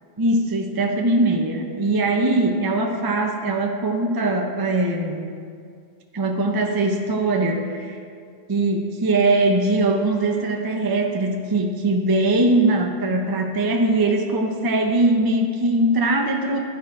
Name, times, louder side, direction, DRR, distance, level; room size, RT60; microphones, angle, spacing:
voice 1, 0.2-5.3 6.1-8.0 8.5-16.6, right 2 dB, 30° right, 2 dB, 0.4 m, -21 dB
13.0 x 4.4 x 4.7 m, 2.2 s
omnidirectional pair, 1.1 m